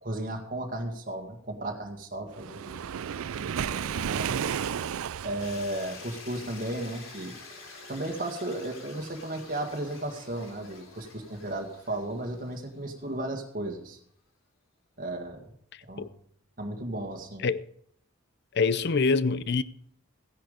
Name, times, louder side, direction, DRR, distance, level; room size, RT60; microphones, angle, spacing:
voice 1, 0.0-2.8 3.4-4.4 5.2-7.3 7.9-14.0 15.0-15.5 15.9-16.1 16.6-17.5, right 1 dB, 40° right, 1.9 m, -35 dB
Waves surf, 2.4-5.7, right 8 dB, 85° right, 0.4 m, -32 dB
sound 1, 5.4-13.4, left 3 dB, 70° left, 3.4 m, -48 dB
voice 2, 18.5-19.6, left 4 dB, 55° left, 0.6 m, -25 dB
15.5 x 10.5 x 5.1 m
head